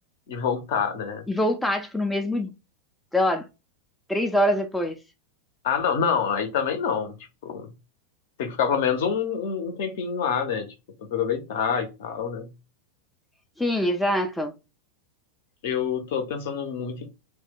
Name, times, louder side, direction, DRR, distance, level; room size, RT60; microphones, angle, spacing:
voice 1, 0.3-1.2 5.6-7.1 7.4-7.7 8.4-10.7 11.0-12.5 15.6-17.1, left 7 dB, 50° left, 0.5 m, -26 dB
voice 2, 1.3-2.5 3.1-3.5 4.1-4.9 13.6-14.5, left 1 dB, 5° left, 0.3 m, -24 dB
2.2 x 2.0 x 3.6 m
figure-of-eight pair, 90°, 0 cm